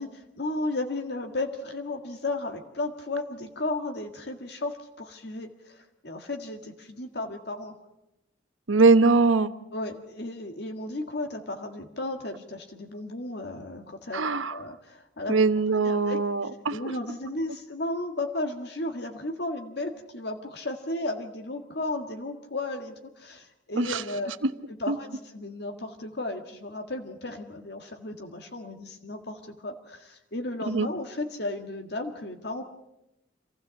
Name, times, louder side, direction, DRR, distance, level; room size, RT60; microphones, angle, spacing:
voice 1, 0.0-7.7 9.7-15.4 15.8-16.2 16.7-24.3 24.8-32.6, left 2 dB, 55° left, 4 dB, 1.8 m, -34 dB
voice 2, 8.7-9.5 14.1-14.6 15.3-16.8 23.8-24.0 24.9-25.0 30.7-30.9, right 3 dB, 90° right, 11 dB, 1.1 m, -21 dB
27.0 x 16.0 x 7.6 m, 0.88 s
head